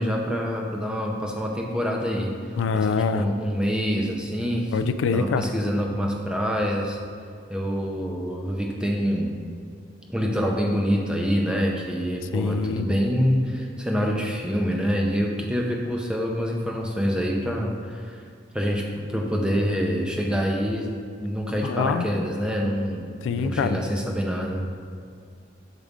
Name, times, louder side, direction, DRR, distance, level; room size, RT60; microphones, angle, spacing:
voice 1, 0.0-2.3 2.7-4.7 5.1-7.0 7.5-9.3 10.1-18.2 18.5-20.9 21.2-24.7, equal, 5° right, 0 dB, 0.5 m, -26 dB
voice 2, 2.6-3.2 4.7-5.5 12.3-12.9 21.6-22.1 23.2-23.8, left 5 dB, 80° left, 10 dB, 0.3 m, -24 dB
6.6 x 4.8 x 3.6 m, 2.2 s
head